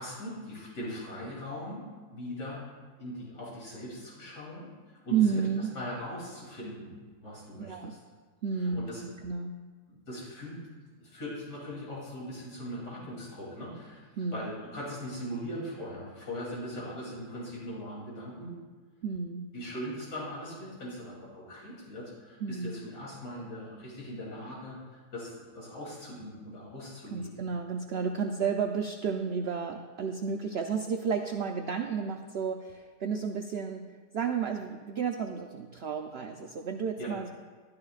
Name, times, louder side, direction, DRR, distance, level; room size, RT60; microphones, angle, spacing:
voice 1, 0.0-2.6 3.0-5.4 5.7-6.9 7.2-8.0 8.5-9.1 9.9-10.6 11.0-18.5 19.5-27.4 37.0-37.1, equal, 75° left, -6 dB, 3.6 m, -40 dB
voice 2, 5.1-5.7 7.6-7.9 8.4-9.6 14.2-14.5 16.8-16.9 19.0-19.5 22.4-22.7 27.1-37.3, right 6 dB, 80° right, 4 dB, 0.5 m, -32 dB
12.5 x 12.5 x 2.4 m, 1.5 s
omnidirectional pair, 1.7 m